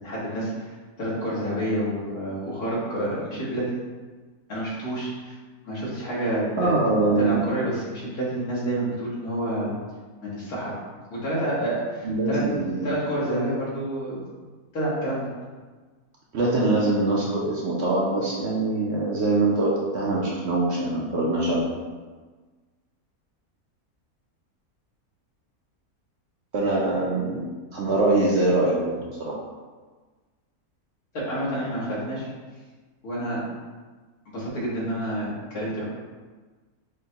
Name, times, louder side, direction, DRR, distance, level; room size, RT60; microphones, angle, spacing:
voice 1, 0.0-3.7 4.5-5.3 5.6-6.7 7.2-9.7 10.2-10.8 11.1-12.4 12.8-14.3 14.7-15.3 31.1-32.3 33.0-33.4 34.3-35.8, right 1 dB, 85° left, -7 dB, 1.9 m, -28 dB
voice 2, 6.6-7.5 12.0-12.9 16.3-21.7 26.5-27.4 27.7-29.3, right 2 dB, 60° right, -4 dB, 0.7 m, -23 dB
6.3 x 2.2 x 2.8 m, 1.4 s
omnidirectional pair, 1.6 m